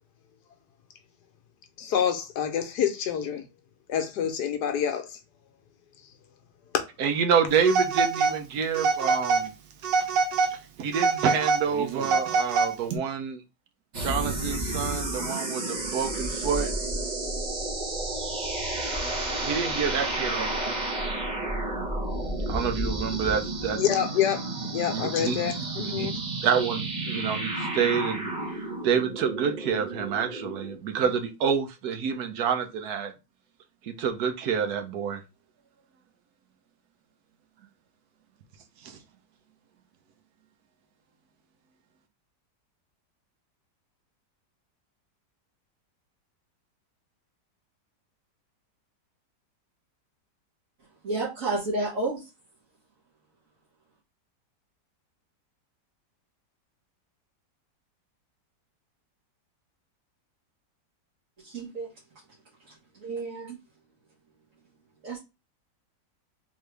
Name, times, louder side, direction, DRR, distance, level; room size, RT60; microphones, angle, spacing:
voice 1, 1.8-3.4 3.9-5.2 23.8-26.1, left 9 dB, 70° left, 1.2 m, -27 dB
voice 2, 7.0-9.5 10.5-13.4 14.0-16.7 19.4-20.7 22.5-23.8 24.9-25.4 25.8-26.1 26.4-28.3 28.8-33.1 33.8-35.2 38.8-39.0, right 7 dB, 65° right, 1.2 m, -28 dB
Telephone, 7.7-8.4 8.8-9.5 9.8-10.6 10.9-13.0, right 4 dB, 90° right, 1.4 m, -25 dB
sound 1, 13.9-30.8, right 2 dB, 30° right, 0.9 m, -31 dB
voice 3, 51.0-52.3 61.4-61.9 62.6-63.5 65.0-65.2, right 2 dB, 50° right, 1.7 m, -31 dB
3.7 x 3.1 x 3.3 m
omnidirectional pair, 1.9 m